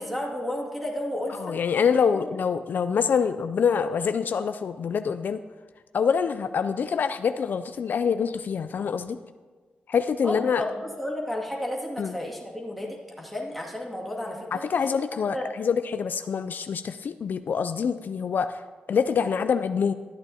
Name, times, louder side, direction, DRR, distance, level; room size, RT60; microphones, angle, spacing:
voice 1, 0.0-1.6 10.2-14.6 15.3-15.5, left 1 dB, ahead, -3 dB, 2.2 m, -32 dB
voice 2, 1.3-5.4 5.9-9.2 9.9-10.6 12.0-12.1 14.5-18.6 18.9-19.9, left 6 dB, 65° left, 10 dB, 0.3 m, -25 dB
13.0 x 8.8 x 2.8 m, 1.4 s
cardioid pair, 75°, 3 cm